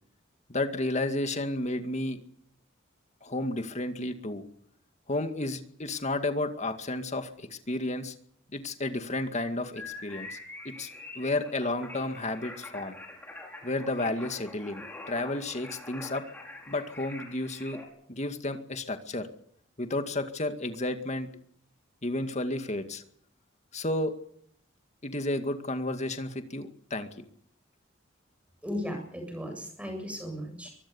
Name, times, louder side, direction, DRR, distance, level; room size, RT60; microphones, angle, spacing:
voice 1, 0.5-2.2 3.2-4.5 5.1-8.1 8.5-10.4 10.6-10.9 11.2-12.9 13.6-16.2 16.7-17.8 18.1-19.3 19.8-21.3 22.0-23.0 23.7-24.1 25.0-27.1, left 2 dB, 35° left, 7 dB, 2.1 m, -32 dB
sound 1, 9.7-17.8, left 2 dB, 10° left, 5.5 m, -45 dB
voice 2, 28.6-30.7, equal, 5° right, 4 dB, 7.8 m, -36 dB
24.0 x 19.5 x 7.2 m, 0.67 s
head